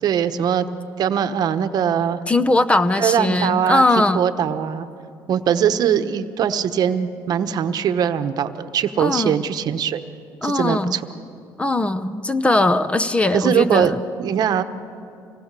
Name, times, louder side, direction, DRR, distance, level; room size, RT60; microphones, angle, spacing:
voice 1, 0.0-0.7 1.0-2.2 3.0-3.8 4.1-4.9 5.3-10.0 10.4-11.0 13.3-14.6, right 8 dB, 55° right, 10 dB, 1.0 m, -21 dB
voice 2, 2.3-4.2 9.0-9.4 10.4-11.0 11.6-14.0, left 2 dB, 15° left, 13 dB, 0.7 m, -19 dB
25.5 x 19.0 x 6.8 m, 2.6 s
cardioid pair, 115°, 8 cm